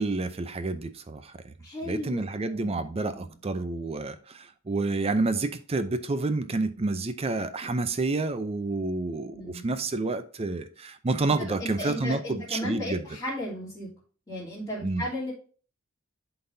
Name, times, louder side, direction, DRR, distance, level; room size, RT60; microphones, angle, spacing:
voice 1, 0.0-1.3 1.9-13.0 14.8-15.0, right 3 dB, 30° right, 0.5 m, -29 dB
voice 2, 1.6-3.3 9.3-9.7 11.4-13.9 14.3-15.3, left 1 dB, 15° left, 3.1 m, -35 dB
11.5 x 4.0 x 2.7 m
head